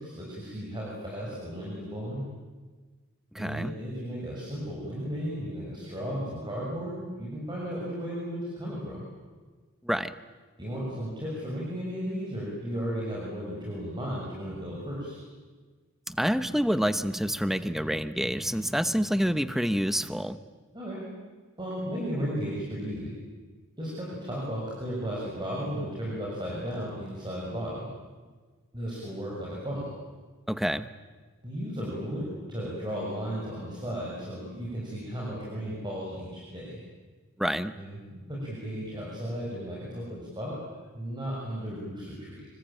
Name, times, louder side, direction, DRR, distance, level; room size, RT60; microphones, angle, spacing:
voice 1, 0.0-2.2 3.4-9.0 10.6-15.2 20.7-21.0 21.6-23.1 23.8-27.8 28.7-29.9 31.4-36.8 37.8-40.6 40.9-42.5, equal, 20° right, -5 dB, 6.5 m, -35 dB
voice 2, 3.3-3.7 9.8-10.1 16.1-20.4 30.5-30.9 37.4-37.7, equal, ahead, 12 dB, 0.9 m, -27 dB
26.5 x 25.0 x 9.0 m, 1.4 s
head